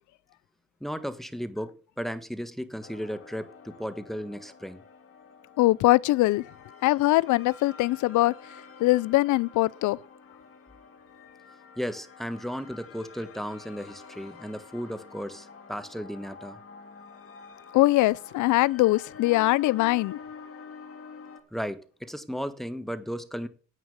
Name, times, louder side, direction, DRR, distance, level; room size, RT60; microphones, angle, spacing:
voice 1, 0.8-4.8 11.8-16.6 21.5-23.5, equal, ahead, 1.4 m, -35 dB
sound 1, 2.8-21.4, left 5 dB, 45° left, 2.8 m, -48 dB
voice 2, 5.6-6.4 6.8-8.3 8.8-10.0 17.7-20.2, left 18 dB, 80° left, 0.4 m, -22 dB
9.8 x 8.7 x 6.9 m
cardioid pair, 90°, 30 cm